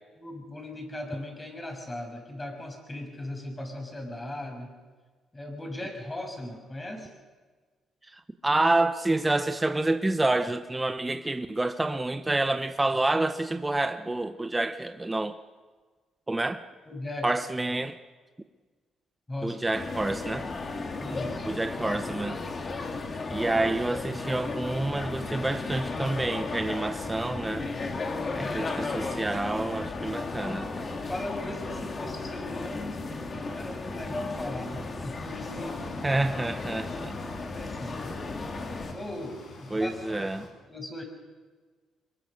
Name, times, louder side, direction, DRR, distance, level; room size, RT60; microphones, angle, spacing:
voice 1, 0.2-4.7 5.3-7.1 16.9-17.3 19.3-19.6 21.0-21.5 28.3-28.7 29.1-29.2 31.1-36.0 37.3-38.1 38.9-40.1 40.7-41.0, left 1 dB, 20° left, 6.7 m, -38 dB
voice 2, 8.1-15.4 16.3-16.6 17.2-18.0 19.4-20.5 21.4-22.4 23.3-27.7 28.3-30.7 36.0-37.2 39.7-40.5, right 2 dB, 15° right, 0.9 m, -28 dB
sound 1, 19.7-38.9, left 3 dB, 40° left, 2.8 m, -35 dB
sound 2, 35.2-40.5, left 4 dB, 65° left, 6.1 m, -48 dB
25.0 x 22.0 x 6.7 m
cardioid pair, 90°, 0 cm